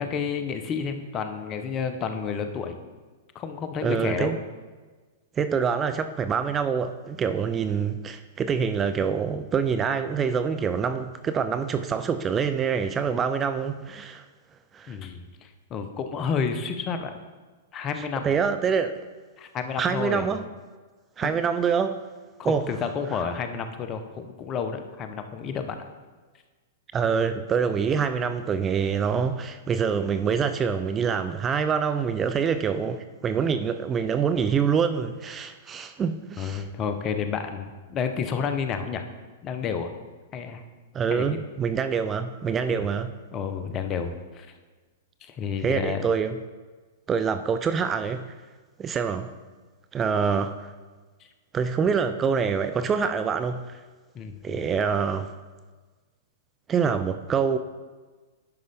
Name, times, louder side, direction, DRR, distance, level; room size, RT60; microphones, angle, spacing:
voice 1, 0.0-2.8 3.3-4.3 14.9-17.2 17.7-18.3 19.4-20.3 21.2-21.4 22.4-25.8 36.4-39.0 39.4-39.9 40.3-40.6 41.1-41.4 42.7-42.9 43.3-44.5 45.2-46.1 54.1-54.7, left 6 dB, 30° left, 8 dB, 0.8 m, -30 dB
voice 2, 3.8-4.4 5.4-14.2 14.7-15.0 18.2-19.0 19.8-20.5 21.2-22.1 22.4-22.7 26.9-36.6 40.9-43.1 45.6-46.4 47.1-48.2 48.8-49.3 49.9-50.7 51.5-53.8 54.4-55.3 56.7-57.6, right 6 dB, 20° right, 10 dB, 0.4 m, -25 dB
10.5 x 5.2 x 3.5 m, 1.4 s
hypercardioid pair, 110°, 0 cm